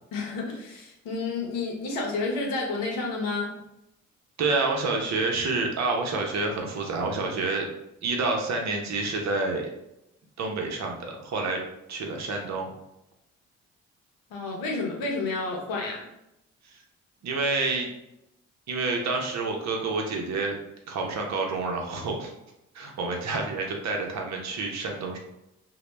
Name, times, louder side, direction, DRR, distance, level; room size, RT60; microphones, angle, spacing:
voice 1, 0.1-3.5 14.3-16.0, left 3 dB, 75° left, -1 dB, 0.7 m, -30 dB
voice 2, 4.4-7.7 8.0-9.7 10.4-11.6 11.9-12.7 17.2-17.9 18.7-20.6 20.9-22.3 22.7-25.2, right 3 dB, 55° right, 1 dB, 0.7 m, -28 dB
2.2 x 2.0 x 3.1 m, 0.84 s
hypercardioid pair, 45°, 33 cm